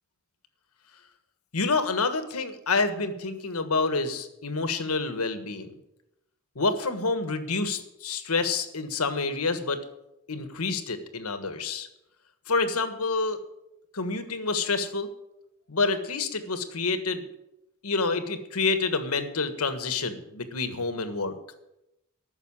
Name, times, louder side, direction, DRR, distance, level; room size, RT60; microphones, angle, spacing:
voice 1, 1.5-5.7 6.5-9.8 10.3-11.9 12.5-13.4 13.9-15.1 15.7-17.3 17.8-21.4, left 3 dB, 85° left, 9 dB, 1.5 m, -28 dB
13.5 x 6.7 x 9.8 m, 0.88 s
head